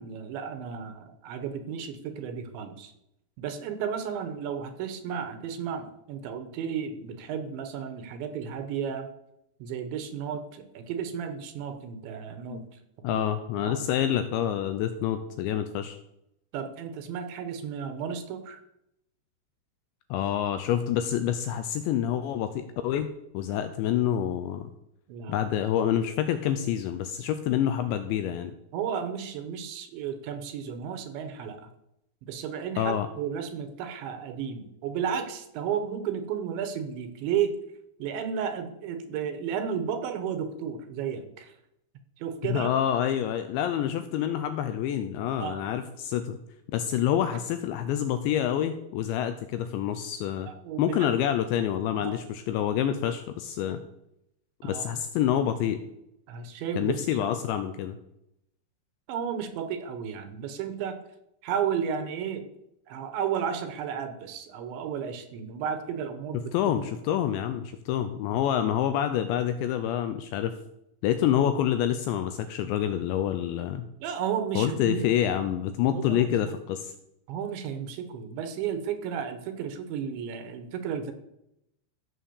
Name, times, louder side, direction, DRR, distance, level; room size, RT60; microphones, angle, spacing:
voice 1, 0.0-2.9 3.4-9.1 9.6-12.6 13.1-13.2 13.6-13.8 16.5-18.6 25.1-25.5 28.7-31.7 32.2-37.5 38.0-41.5 42.2-42.7 45.4-45.6 50.5-51.1 52.0-52.2 52.8-52.9 54.6-55.0 56.3-57.0 59.1-61.0 61.4-62.5 62.9-66.9 74.0-75.1 75.9-76.5 77.3-81.1, right 7 dB, 70° right, 8 dB, 3.3 m, -33 dB
voice 2, 13.0-16.0 20.1-23.1 23.3-24.7 25.3-28.5 32.8-33.1 42.5-46.4 46.7-50.5 50.8-53.8 54.6-55.8 56.8-58.0 66.3-70.6 71.0-73.9 74.6-76.9, left 10 dB, 80° left, 10 dB, 2.7 m, -27 dB
15.5 x 7.5 x 7.1 m, 0.83 s
omnidirectional pair, 5.8 m